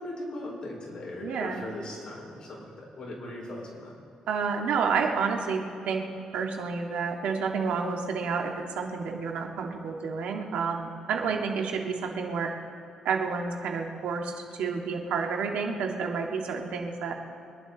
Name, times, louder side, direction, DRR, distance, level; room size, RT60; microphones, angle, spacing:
voice 1, 0.0-3.9, left 1 dB, 45° left, -3 dB, 4.5 m, -39 dB
voice 2, 1.2-1.6 4.3-6.1 6.3-12.5 13.0-14.3 14.6-17.2, right 5 dB, 85° right, 2 dB, 1.7 m, -30 dB
25.0 x 11.0 x 4.0 m, 2.6 s
cardioid pair, 105°, 2 cm